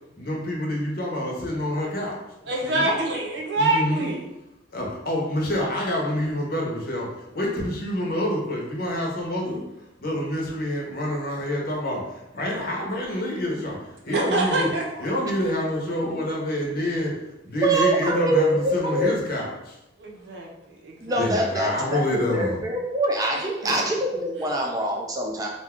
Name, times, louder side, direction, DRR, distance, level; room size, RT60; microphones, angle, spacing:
voice 1, 0.2-2.2 2.6-2.9 3.5-4.1 4.7-9.6 10.0-14.7 15.0-17.1 17.4-19.8 21.1-22.6, left 1 dB, 55° left, -2 dB, 0.7 m, -27 dB
voice 2, 2.5-4.2 14.1-15.1 20.0-21.2 23.6-23.7, right 2 dB, 60° right, -1 dB, 0.7 m, -26 dB
voice 3, 17.6-19.1 21.0-25.5, right 1 dB, 20° right, 0 dB, 0.4 m, -24 dB
2.5 x 2.3 x 3.6 m, 0.92 s
head